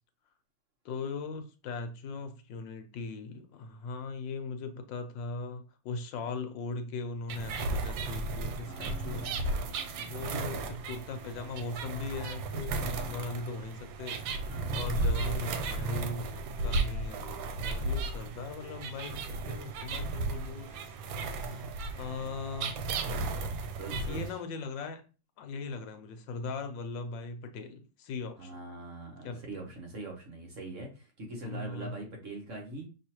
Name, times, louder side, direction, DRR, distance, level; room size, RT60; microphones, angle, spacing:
voice 1, 0.8-9.3 10.0-10.6 10.9-21.6 21.9-22.8 24.0-25.0 25.4-28.6 29.2-29.4 31.4-31.9, left 4 dB, 80° left, 7 dB, 1.4 m, -39 dB
sound 1, 7.3-24.3, right 2 dB, 90° right, 1.4 m, -34 dB
voice 2, 8.6-10.6 12.9-13.2 14.5-14.8 23.7-24.4 28.4-32.9, right 2 dB, 45° right, 0 dB, 1.4 m, -43 dB
5.5 x 3.1 x 2.9 m, 0.33 s
omnidirectional pair, 2.0 m